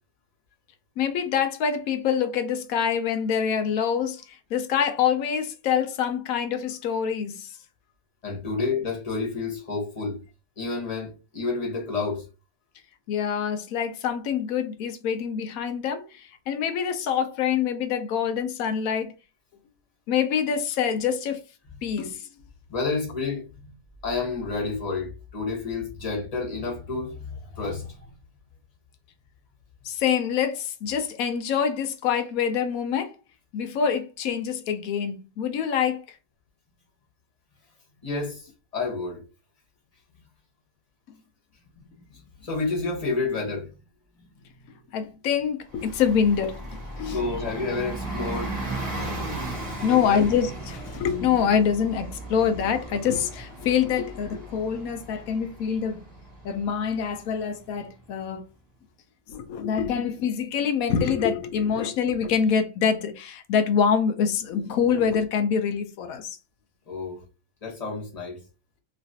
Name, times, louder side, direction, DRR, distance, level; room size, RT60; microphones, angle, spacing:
voice 1, 1.0-7.5 13.1-19.1 20.1-21.4 21.8-22.3 29.8-33.2 33.5-36.2 44.9-47.2 49.0-56.0 56.4-58.4 59.3-66.4, left 7 dB, 75° left, 1.0 m, -25 dB
voice 2, 8.2-10.2 10.6-12.2 22.7-23.7 24.0-28.1 38.0-39.2 41.7-43.7 47.1-48.6 49.8-50.3 66.9-67.2 67.6-68.4, left 4 dB, 25° left, 1.1 m, -30 dB
Bus, 45.7-58.0, right 2 dB, 20° right, 1.3 m, -36 dB
3.1 x 3.0 x 2.7 m
omnidirectional pair, 1.6 m